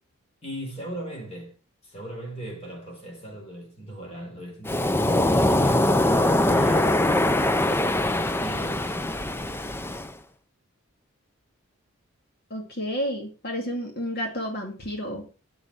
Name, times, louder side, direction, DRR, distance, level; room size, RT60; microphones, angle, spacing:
voice 1, 0.4-1.5 1.8-4.8 5.3-7.1 7.5-8.9, right 1 dB, 30° left, 4.9 m, -38 dB
Waves surf, 4.7-10.1, left 1 dB, 10° left, 0.5 m, -22 dB
voice 2, 12.5-15.3, equal, 50° left, 2.1 m, -31 dB
7.7 x 7.2 x 5.8 m
head